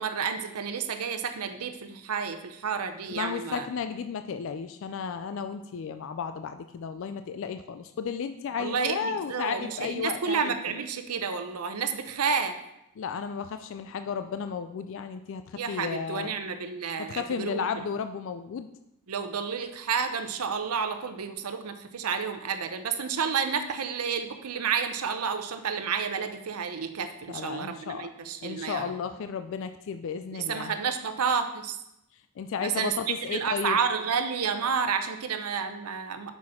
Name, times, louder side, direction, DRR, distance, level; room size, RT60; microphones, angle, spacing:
voice 1, 0.0-3.7 8.6-12.6 15.6-17.7 19.1-28.9 30.3-31.8 32.6-32.9 33.3-36.3, right 6 dB, 85° right, 8 dB, 0.7 m, -30 dB
voice 2, 3.1-10.5 13.0-16.3 17.0-18.7 27.3-28.1 28.4-30.7 32.4-33.8, left 6 dB, 60° left, 9 dB, 0.3 m, -33 dB
6.3 x 6.0 x 4.2 m, 0.84 s
head